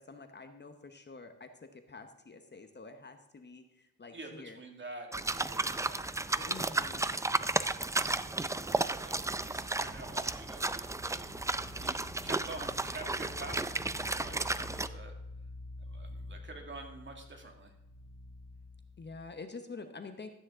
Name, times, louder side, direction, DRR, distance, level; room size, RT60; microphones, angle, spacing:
voice 1, 0.0-4.6 6.4-7.1 19.0-20.3, left 4 dB, 35° left, 7 dB, 1.0 m, -48 dB
voice 2, 4.1-6.1 8.1-11.2 11.8-15.1 15.9-17.7, right 2 dB, 40° right, 3 dB, 2.2 m, -48 dB
sound 1, 5.1-14.9, right 2 dB, 10° right, 0.4 m, -33 dB
sound 2, 9.2-19.1, left 2 dB, 85° right, 3.3 m, -49 dB
13.5 x 9.3 x 3.8 m, 0.86 s
cardioid pair, 100°, 31 cm